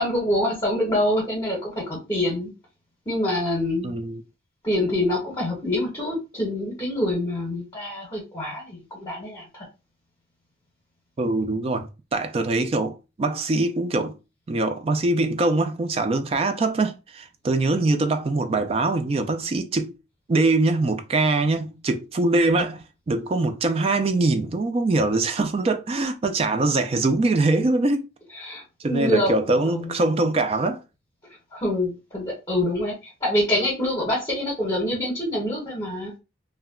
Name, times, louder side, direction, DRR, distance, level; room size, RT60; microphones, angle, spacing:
voice 1, 0.0-2.5 3.1-3.9 4.6-9.6 28.3-29.9 31.5-32.9 33.2-36.2, left 1 dB, 20° left, 1.0 m, -26 dB
voice 2, 3.8-4.2 11.2-14.2 14.5-19.9 20.3-28.1 28.8-30.8, right 2 dB, 35° right, 0.3 m, -23 dB
2.2 x 2.1 x 3.5 m
head